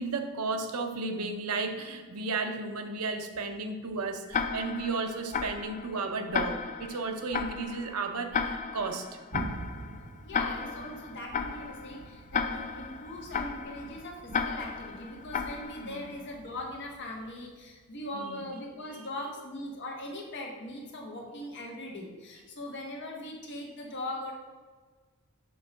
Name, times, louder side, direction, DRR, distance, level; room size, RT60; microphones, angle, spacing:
voice 1, 0.0-9.1 15.8-16.1 18.1-18.4 18.9-19.0, right 3 dB, 85° right, 6 dB, 0.7 m, -34 dB
Tick-tock, 4.3-16.2, left 5 dB, 35° left, 0.4 m, -35 dB
Thunder, 9.3-18.7, right 3 dB, 35° right, 0.4 m, -47 dB
voice 2, 10.2-24.3, left 1 dB, 55° left, 0 dB, 1.3 m, -40 dB
5.7 x 3.8 x 5.4 m, 1.4 s
head